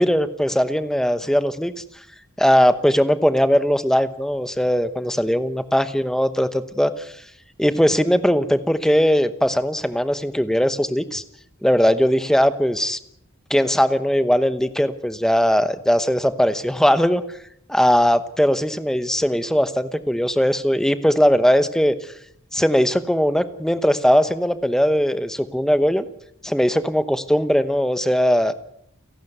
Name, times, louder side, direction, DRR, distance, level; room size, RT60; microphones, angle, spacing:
voice 1, 0.0-1.8 2.4-7.1 7.6-11.2 11.6-13.0 13.5-17.2 17.7-22.1 22.5-26.0 26.4-28.5, equal, ahead, 11 dB, 1.0 m, -19 dB
30.0 x 11.5 x 8.1 m, 0.74 s
head